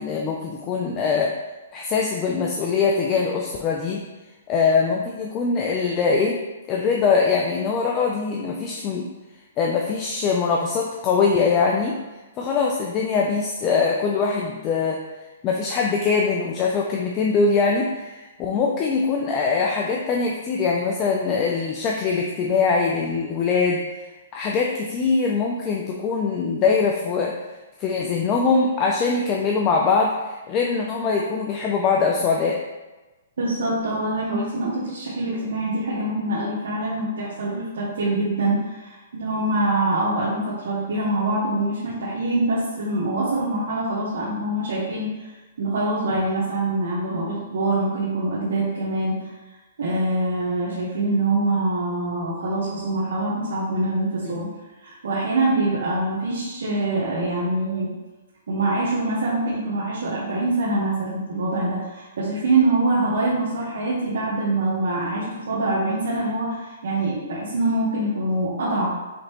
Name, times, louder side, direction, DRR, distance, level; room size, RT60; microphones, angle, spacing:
voice 1, 0.0-1.3 1.7-4.0 4.5-6.4 6.7-9.0 9.6-12.0 12.4-15.0 15.4-23.8 24.3-27.3 27.8-32.6 54.2-54.4, left 5 dB, 25° left, -1 dB, 0.4 m, -22 dB
voice 2, 33.4-45.3 45.6-49.3 49.8-54.5 54.8-57.9 58.5-68.9, right 2 dB, 75° right, -8 dB, 1.1 m, -24 dB
5.1 x 3.1 x 3.0 m, 1.2 s
hypercardioid pair, 145°, 0 cm